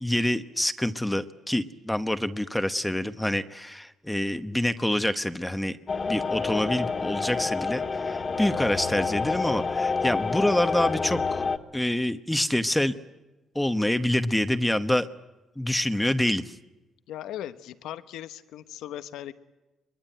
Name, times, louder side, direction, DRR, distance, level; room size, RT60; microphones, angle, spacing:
voice 1, 0.0-5.8 6.1-11.4 11.7-12.9 13.5-15.1 15.6-16.4, left 1 dB, 5° left, 10 dB, 1.1 m, -26 dB
sound 1, 5.9-11.6, left 4 dB, 40° left, 1.7 m, -28 dB
voice 2, 17.1-19.3, left 12 dB, 85° left, 11 dB, 1.1 m, -38 dB
23.5 x 22.5 x 9.1 m, 1.1 s
cardioid pair, 90°, 0 cm